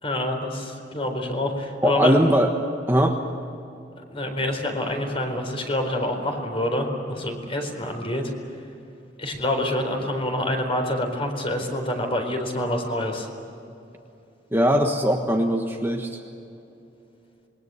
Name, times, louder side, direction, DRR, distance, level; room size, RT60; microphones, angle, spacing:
voice 1, 0.0-2.1 4.1-8.3 9.2-13.3, left 1 dB, 30° left, 4 dB, 4.1 m, -27 dB
voice 2, 1.8-2.5 2.9-3.2 14.5-16.2, equal, 15° right, 2 dB, 1.4 m, -20 dB
27.0 x 22.0 x 8.2 m, 2.8 s
head